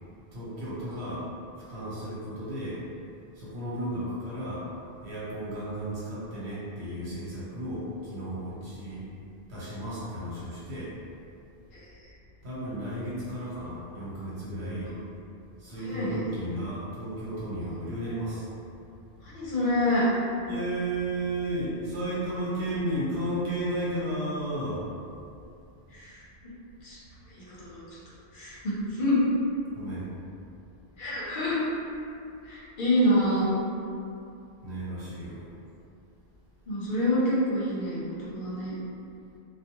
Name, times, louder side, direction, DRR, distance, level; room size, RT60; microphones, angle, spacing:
voice 1, 0.3-1.2 1.7-2.8 3.3-4.7 5.0-9.0 9.5-10.9 12.4-15.0 15.6-18.5 20.5-24.9 29.7-30.1 34.6-35.5, right 1 dB, 75° right, -10 dB, 1.1 m, -33 dB
voice 2, 15.8-16.2 19.2-20.1 25.9-26.2 26.8-27.0 27.3-29.2 31.0-31.6 32.4-33.5 36.7-38.7, left 1 dB, 55° left, -8 dB, 0.7 m, -27 dB
2.3 x 2.2 x 2.8 m, 2.6 s
omnidirectional pair, 1.1 m